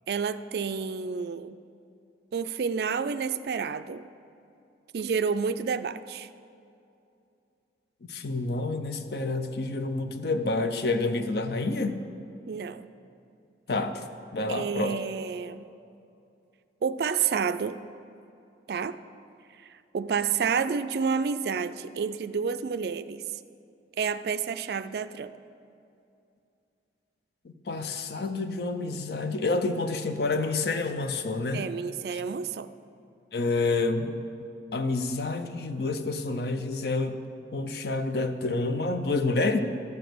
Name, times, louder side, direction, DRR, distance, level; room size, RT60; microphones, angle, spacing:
voice 1, 0.1-1.6 2.3-4.0 4.9-6.3 12.5-12.9 14.5-15.7 16.8-17.8 18.7-19.0 19.7-23.2 24.0-25.3 31.5-32.7, right 6 dB, 60° right, 13 dB, 0.3 m, -29 dB
voice 2, 8.1-12.0 13.7-14.1 14.3-14.9 27.4-31.6 33.3-34.1 34.7-37.2 37.5-39.6, left 3 dB, 60° left, 8 dB, 0.5 m, -28 dB
13.5 x 5.1 x 6.1 m, 2.6 s
head